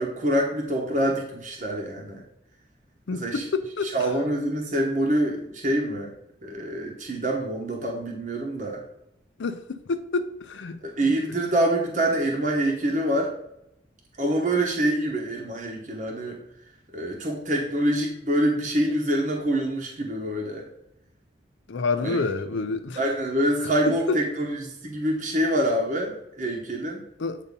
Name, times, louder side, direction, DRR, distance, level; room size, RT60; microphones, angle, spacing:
voice 1, 0.0-2.2 3.1-3.4 3.9-6.1 6.4-8.8 10.8-13.4 14.2-16.4 16.9-20.7 22.0-22.2 23.0-27.0, right 1 dB, 40° right, 0 dB, 0.9 m, -26 dB
voice 2, 3.1-4.1 9.4-10.8 21.7-23.0 23.6-24.2 27.2-27.4, left 4 dB, 80° left, 9 dB, 0.5 m, -28 dB
8.2 x 2.8 x 5.2 m, 0.80 s
head